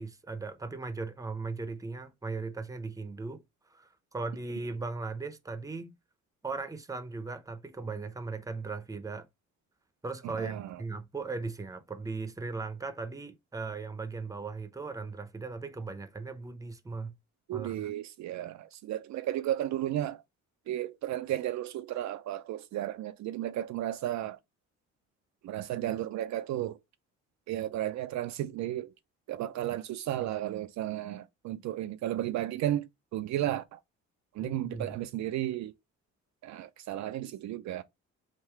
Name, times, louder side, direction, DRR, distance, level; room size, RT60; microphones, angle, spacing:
voice 1, 0.0-3.4 3.7-5.9 6.4-9.3 10.0-17.1 17.5-17.9 34.4-35.0, right 3 dB, 10° right, 0.6 m, -38 dB
voice 2, 10.2-10.8 17.5-20.2 20.7-24.4 25.4-26.8 27.5-28.9 29.3-33.8 34.3-35.7 36.4-37.8, right 13 dB, 65° right, 0.4 m, -34 dB
3.7 x 2.6 x 4.4 m
cardioid pair, 90°, 30 cm